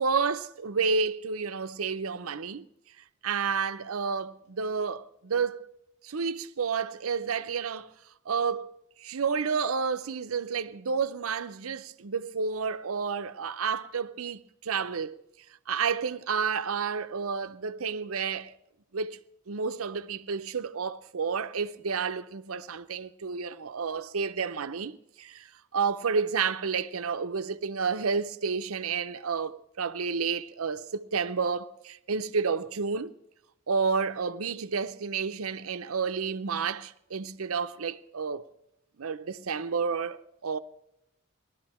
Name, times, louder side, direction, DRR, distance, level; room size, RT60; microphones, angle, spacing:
voice 1, 0.0-2.7 3.2-5.6 6.0-7.9 8.3-15.2 15.7-18.6 18.9-19.2 19.5-25.5 25.7-33.1 33.7-38.4 39.0-40.6, right 5 dB, 90° right, 0.7 m, -30 dB
18.5 x 12.5 x 4.3 m
head